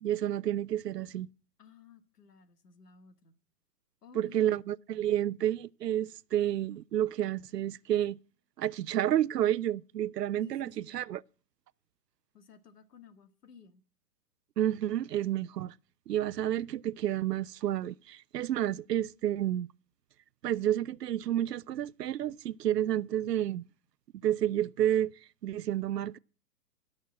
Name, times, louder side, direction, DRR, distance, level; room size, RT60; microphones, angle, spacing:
voice 1, 0.0-1.3 4.1-8.2 8.6-11.2 14.6-15.7 16.1-19.7 20.4-23.7 24.2-25.1 25.4-26.2, right 11 dB, 80° right, 0.6 m, -30 dB
voice 2, 1.6-3.4 4.0-4.6 10.4-11.0 12.3-13.8, left 6 dB, 75° left, 2.0 m, -55 dB
17.0 x 6.4 x 7.3 m
hypercardioid pair, 145°, 48 cm